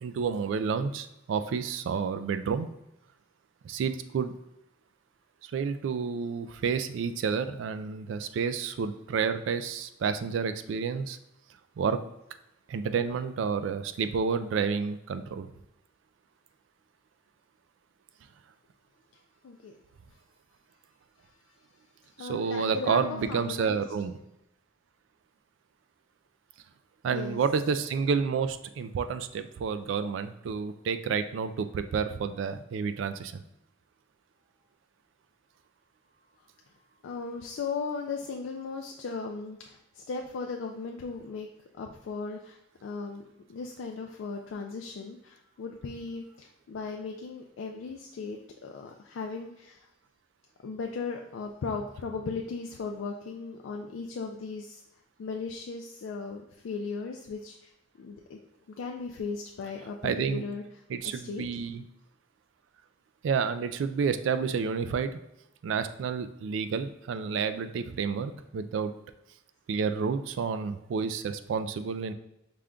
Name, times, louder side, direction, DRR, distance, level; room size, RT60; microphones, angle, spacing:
voice 1, 0.0-2.7 3.6-4.3 5.4-11.2 11.8-12.0 12.7-15.5 22.2-24.2 27.0-33.4 60.0-60.4 60.9-61.8 63.2-65.2 65.6-68.9 69.7-72.1, right 5 dB, 70° right, 11 dB, 0.3 m, -30 dB
voice 2, 19.4-19.8 22.2-23.8 27.1-27.4 37.0-41.5 41.8-43.2 43.5-49.9 50.6-54.8 55.2-57.7 58.0-58.4 58.7-60.6 61.0-61.4, left 4 dB, 80° left, 1 dB, 0.3 m, -37 dB
5.0 x 2.2 x 3.6 m, 0.86 s
head